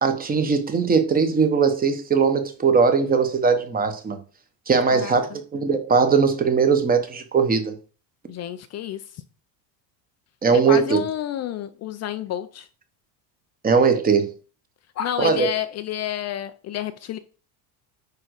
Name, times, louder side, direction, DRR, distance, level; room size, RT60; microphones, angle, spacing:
voice 1, 0.0-4.2 4.7-7.7 10.4-11.0 13.6-14.3 15.2-15.5, right 5 dB, 20° right, 1.1 m, -20 dB
voice 2, 8.3-9.0 10.5-12.7 15.0-17.2, left 11 dB, 35° left, 0.5 m, -29 dB
9.7 x 3.8 x 6.4 m
cardioid pair, 165°, 47 cm